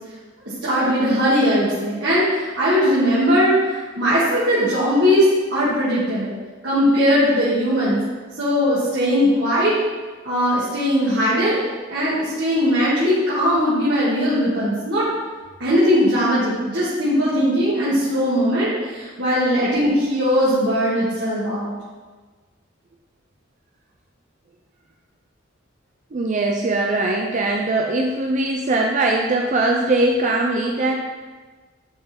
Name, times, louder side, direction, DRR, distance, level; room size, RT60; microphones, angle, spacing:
voice 1, 0.6-6.3 6.6-8.0 8.4-9.8 10.2-11.6 11.9-15.1 15.6-21.7, equal, 60° right, -10 dB, 2.0 m, -19 dB
voice 2, 26.1-31.0, right 2 dB, 40° right, 1 dB, 0.5 m, -21 dB
10.5 x 3.7 x 4.4 m, 1.4 s
head